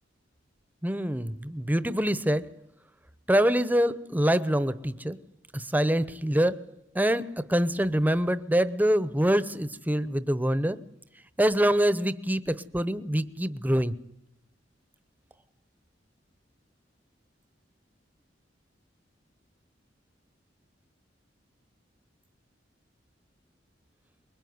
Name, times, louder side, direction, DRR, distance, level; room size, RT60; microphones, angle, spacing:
voice 1, 0.8-2.5 3.3-5.2 5.5-6.6 6.9-10.8 11.4-14.0, equal, 10° right, 14 dB, 0.9 m, -25 dB
23.5 x 21.5 x 9.6 m, 0.77 s
head